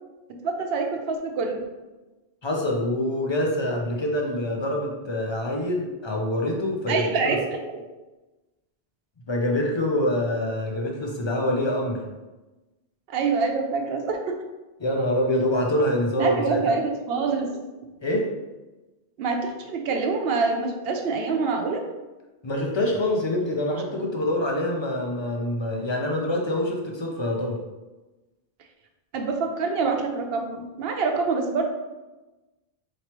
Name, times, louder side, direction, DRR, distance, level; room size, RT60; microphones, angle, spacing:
voice 1, 0.4-1.6 6.9-7.9 13.1-14.2 16.2-17.6 19.2-21.8 29.1-31.6, right 4 dB, 65° right, 3 dB, 0.8 m, -26 dB
voice 2, 2.4-7.4 9.3-12.0 14.8-16.7 18.0-18.3 22.4-27.6, left 1 dB, 40° left, 0 dB, 0.4 m, -25 dB
4.5 x 2.9 x 2.9 m, 1.1 s
omnidirectional pair, 1.1 m